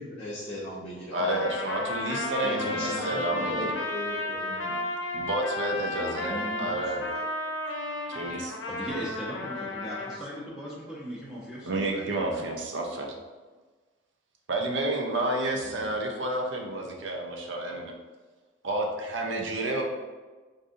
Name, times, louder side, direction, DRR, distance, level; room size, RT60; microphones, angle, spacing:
voice 1, 0.0-1.5 2.4-4.8, left 1 dB, 35° left, -7 dB, 0.6 m, -37 dB
voice 2, 1.1-3.7 5.1-7.0 8.1-8.5 11.6-13.1 14.5-17.9 18.6-19.8, right 1 dB, 70° right, 1 dB, 0.6 m, -30 dB
Trumpet, 1.2-10.2, left 2 dB, 75° left, 0.6 m, -33 dB
voice 3, 5.9-7.1 8.7-12.4 15.5-15.9, equal, 5° right, -9 dB, 0.7 m, -39 dB
4.8 x 2.6 x 2.5 m, 1.3 s
head